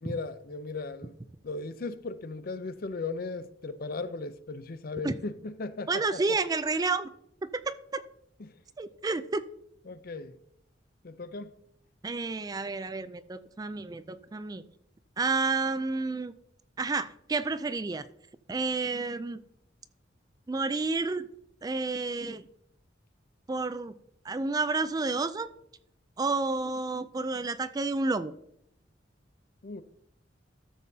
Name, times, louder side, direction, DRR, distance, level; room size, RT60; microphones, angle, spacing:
voice 1, 0.0-1.1 1.4-6.2 8.4-8.6 9.9-10.4 11.0-11.6 29.6-29.8, left 3 dB, 55° left, 0.6 m, -37 dB
voice 2, 5.9-7.1 7.9-8.0 8.8-9.4 12.0-14.6 15.2-16.3 16.8-18.0 18.5-19.4 20.5-21.3 21.6-22.5 23.5-23.9 24.2-25.5 26.2-28.3, right 3 dB, 20° right, 0.3 m, -30 dB
13.0 x 7.3 x 2.8 m
head